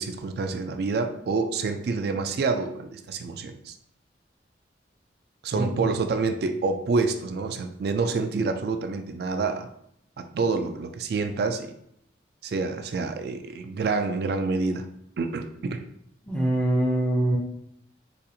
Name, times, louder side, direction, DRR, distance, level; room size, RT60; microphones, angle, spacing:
voice 1, 0.0-3.8 5.4-9.7 10.2-11.7 12.4-14.9 15.2-15.8, right 4 dB, 55° right, 7 dB, 0.3 m, -27 dB
voice 2, 5.5-5.9 16.3-17.4, right 1 dB, 5° left, -2 dB, 0.5 m, -24 dB
4.1 x 2.4 x 2.7 m, 0.73 s
head